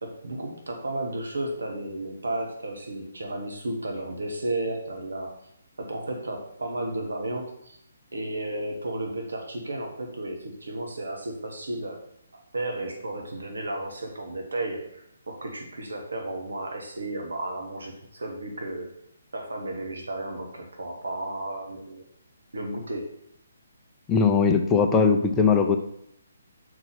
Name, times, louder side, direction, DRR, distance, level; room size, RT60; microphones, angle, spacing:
voice 1, 0.0-5.3 5.8-7.8 8.1-12.0 12.5-18.9 19.3-22.1 22.5-23.1, right 1 dB, 70° right, 2 dB, 1.4 m, -33 dB
voice 2, 24.1-25.8, left 5 dB, 15° left, 3 dB, 0.6 m, -20 dB
6.0 x 4.9 x 5.8 m, 0.73 s
figure-of-eight pair, 140°, 0 cm